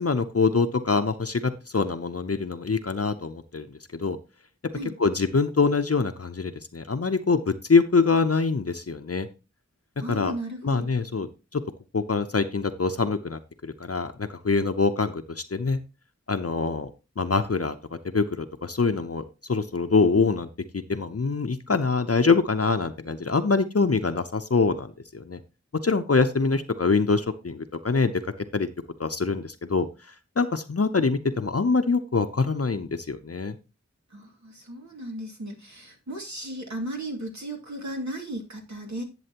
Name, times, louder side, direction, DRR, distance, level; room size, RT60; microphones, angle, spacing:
voice 1, 0.0-4.2 5.0-9.3 10.1-10.3 10.6-11.3 11.5-11.6 11.9-15.8 16.3-16.9 17.2-17.7 18.1-19.2 19.5-20.5 20.9-25.4 25.8-28.2 28.5-28.7 29.0-29.9 30.4-33.6, left 4 dB, 55° left, 8 dB, 0.7 m, -24 dB
voice 2, 10.0-10.9 34.1-39.0, right 1 dB, 75° right, 0 dB, 2.5 m, -35 dB
11.0 x 7.7 x 2.9 m, 0.29 s
wide cardioid pair, 40°, 29 cm